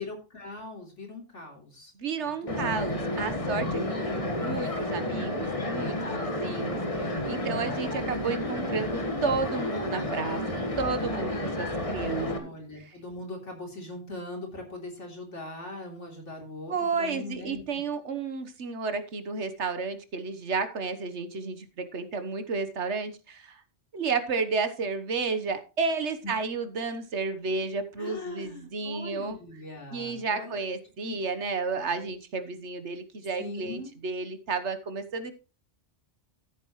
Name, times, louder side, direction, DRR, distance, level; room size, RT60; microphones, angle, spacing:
voice 1, 0.0-1.9 2.4-2.8 3.7-4.5 12.2-17.8 26.2-26.3 28.0-30.7 31.0-31.2 33.4-33.9, left 2 dB, 85° left, 1 dB, 3.7 m, -41 dB
voice 2, 2.0-3.8 4.1-10.4 10.8-12.5 16.7-23.6 23.9-29.4 29.9-35.3, right 4 dB, 75° right, 10 dB, 1.5 m, -32 dB
sound 1, 2.5-12.4, left 1 dB, 30° left, 1.5 m, -31 dB
14.0 x 8.3 x 3.1 m, 0.31 s
omnidirectional pair, 1.2 m